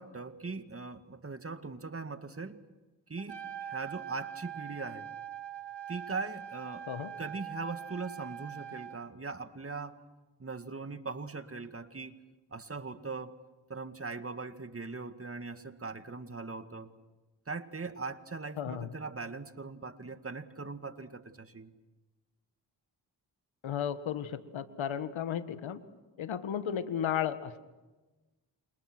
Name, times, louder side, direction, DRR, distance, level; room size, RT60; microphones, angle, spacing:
voice 1, 0.0-2.6 3.1-5.1 5.9-6.9 7.2-10.0 10.4-12.2 12.5-13.3 13.7-16.9 17.5-21.7, right 4 dB, 30° right, 9 dB, 2.0 m, -40 dB
Trumpet, 3.2-9.0, right 9 dB, 65° right, 2.3 m, -43 dB
voice 2, 18.6-18.9 23.6-25.8 26.2-27.6, left 9 dB, 80° left, 11 dB, 1.7 m, -34 dB
29.0 x 27.5 x 6.2 m, 1.2 s
cardioid pair, 55°, 46 cm